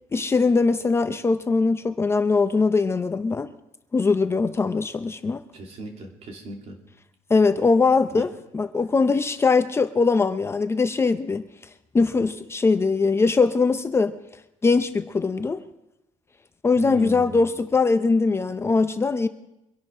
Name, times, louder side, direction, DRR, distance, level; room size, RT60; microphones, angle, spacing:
voice 1, 0.1-3.5 3.9-5.4 7.3-11.4 11.9-14.2 14.6-15.6 16.6-19.3, left 4 dB, 20° left, 9 dB, 0.6 m, -21 dB
voice 2, 5.5-6.8 8.1-8.3 16.8-17.6, right 1 dB, 55° right, 1 dB, 3.1 m, -37 dB
24.5 x 11.5 x 3.7 m, 0.90 s
cardioid pair, 140°, 13 cm